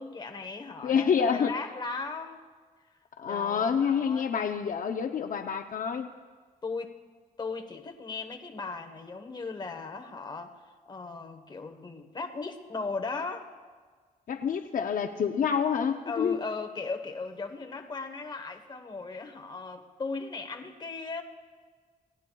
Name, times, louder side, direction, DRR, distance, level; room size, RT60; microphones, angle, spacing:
voice 1, 0.0-2.4 3.3-4.3 6.6-7.0 7.4-13.5 16.0-21.2, left 4 dB, 30° left, 5 dB, 1.1 m, -37 dB
voice 2, 0.8-1.5 3.2-6.1 14.3-16.4, left 7 dB, 65° left, 6 dB, 0.6 m, -27 dB
28.0 x 17.0 x 2.3 m, 1.5 s
wide cardioid pair, 155°, 15 cm